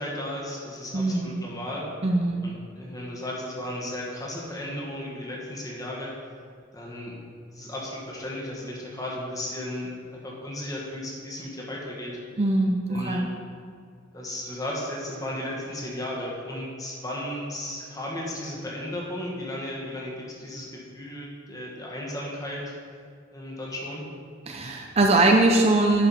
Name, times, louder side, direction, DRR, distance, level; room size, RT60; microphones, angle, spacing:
voice 1, 0.0-1.8 2.4-6.1 6.7-7.1 7.5-12.2 12.9-13.2 14.1-22.6 23.3-24.0, left 1 dB, 20° left, -4 dB, 1.6 m, -35 dB
voice 2, 0.9-1.4 2.0-2.5 12.4-13.3 24.5-26.1, right 2 dB, 30° right, 2 dB, 0.5 m, -21 dB
11.0 x 5.0 x 4.3 m, 2.3 s
head